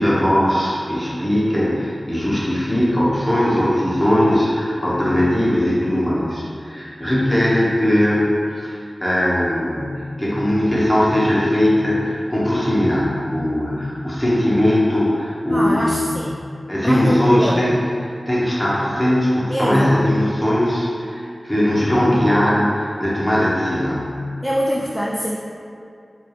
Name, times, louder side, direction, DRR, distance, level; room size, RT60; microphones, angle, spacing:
voice 1, 0.0-16.3 16.7-17.7 18.3-24.2, left 1 dB, 10° left, -7 dB, 1.2 m, -19 dB
voice 2, 15.5-16.3 16.8-17.6 19.5-20.0 24.4-25.4, equal, 5° right, -4 dB, 0.4 m, -23 dB
4.3 x 2.6 x 3.3 m, 2.4 s
cardioid pair, 40°, 0 cm